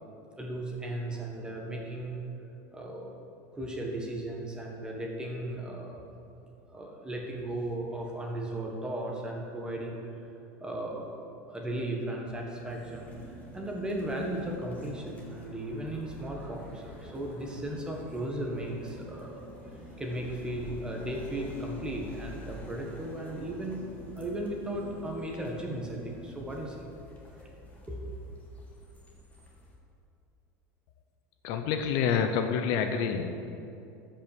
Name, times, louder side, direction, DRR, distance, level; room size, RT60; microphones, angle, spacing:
voice 1, 0.4-2.2 2.7-3.1 3.5-6.0 6.7-10.3 10.6-11.1 11.5-19.5 20.0-23.8 24.2-27.0 27.3-27.6 27.9-28.1, right 1 dB, 10° right, 0 dB, 1.6 m, -36 dB
sound 1, 12.3-26.3, right 1 dB, 60° right, 2.7 m, -50 dB
sound 2, 12.7-29.7, left 2 dB, 20° left, 1.9 m, -50 dB
voice 2, 31.4-33.3, left 7 dB, 60° left, 6 dB, 0.8 m, -27 dB
13.0 x 5.6 x 6.9 m, 2.6 s
supercardioid pair, 145°, 8 cm